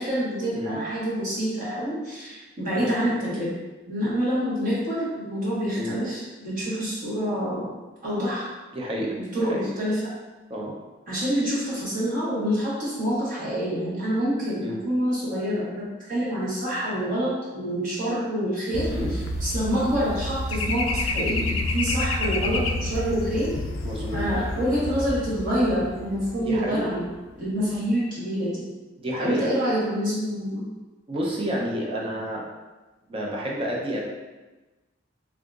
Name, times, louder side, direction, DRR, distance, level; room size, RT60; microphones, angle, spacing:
voice 1, 0.0-3.5 3.9-7.7 8.0-8.5 9.2-10.1 11.1-23.5 24.1-27.1 27.4-28.6 29.2-30.7, equal, 45° right, -8 dB, 1.2 m, -27 dB
voice 2, 8.7-9.7 10.5-10.7 14.6-14.8 18.9-19.1 23.8-24.2 26.4-26.9 29.0-29.5 31.1-32.4 33.1-34.0, equal, 30° right, -3 dB, 0.5 m, -30 dB
sound 1, 18.7-27.3 27.5-27.8, left 2 dB, 75° left, 0.4 m, -29 dB
3.6 x 2.7 x 2.3 m, 1.2 s
head